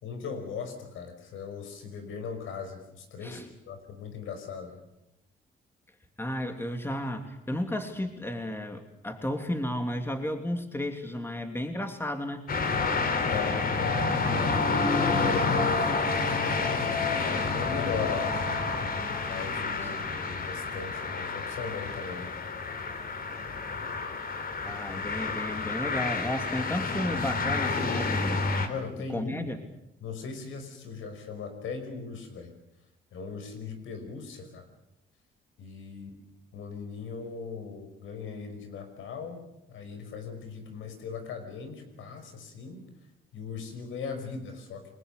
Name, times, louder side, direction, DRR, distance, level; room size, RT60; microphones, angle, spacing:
voice 1, 0.0-4.8 13.3-14.8 15.1-16.0 16.5-18.5 19.2-22.4 28.7-29.5 30.0-32.5 33.1-34.6 35.6-36.1 36.5-39.4 39.7-42.9 43.3-44.9, left 5 dB, 80° left, 7 dB, 5.6 m, -39 dB
voice 2, 6.2-12.4 19.8-19.9 24.6-28.4 29.1-29.6, left 1 dB, 10° left, 5 dB, 3.0 m, -33 dB
sound 1, 12.5-28.7, left 4 dB, 50° left, 3.5 m, -29 dB
29.5 x 21.5 x 6.8 m, 0.85 s
cardioid pair, 90°, 20 cm